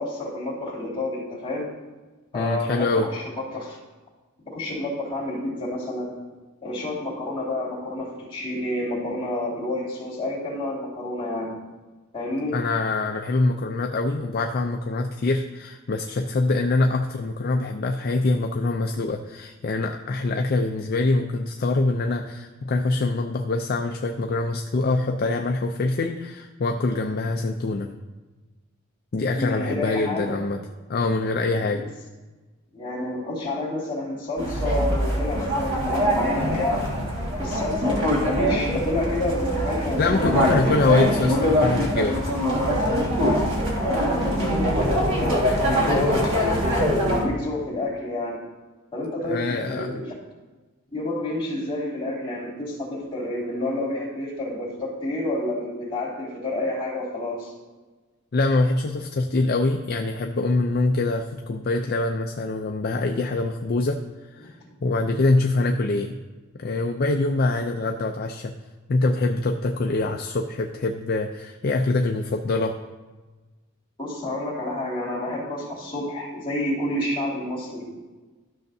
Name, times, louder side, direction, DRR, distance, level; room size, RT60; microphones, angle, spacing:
voice 1, 0.0-1.7 2.3-3.2 3.5-3.8 4.5-6.1 6.6-11.5 12.1-12.6 29.4-30.4 32.7-36.8 37.4-40.6 43.8-48.4 48.9-50.1 50.9-57.5 64.4-64.5 74.0-78.0, left 1 dB, 25° left, -6 dB, 2.7 m, -29 dB
voice 2, 2.3-3.1 12.5-27.9 29.1-30.6 30.9-31.8 40.0-42.2 49.2-50.0 58.3-64.0 64.3-64.5 64.8-66.2 66.6-68.5 68.9-72.8, left 2 dB, 45° left, 4 dB, 0.4 m, -24 dB
sound 1, 34.4-47.2, equal, 60° right, 1.8 m, -23 dB
13.0 x 6.5 x 2.7 m, 1.3 s
head